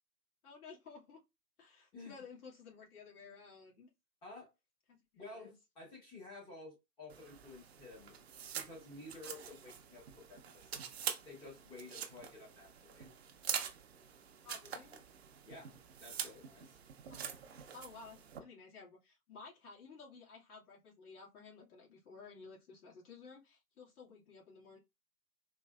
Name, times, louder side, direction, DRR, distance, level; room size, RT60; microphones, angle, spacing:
voice 1, 0.4-1.2 1.6-3.9 4.9-5.6 14.4-15.1 17.1-17.3 17.7-24.8, left 4 dB, 60° left, 2.2 m, -54 dB
voice 2, 1.9-2.2 4.2-4.5 5.2-8.2 8.5-10.9 11.2-13.1 15.5-16.8, left 2 dB, 10° left, 0.8 m, -52 dB
sound 1, 7.1-18.4, right 8 dB, 40° right, 0.6 m, -45 dB
4.2 x 3.0 x 2.3 m
hypercardioid pair, 145°, 49 cm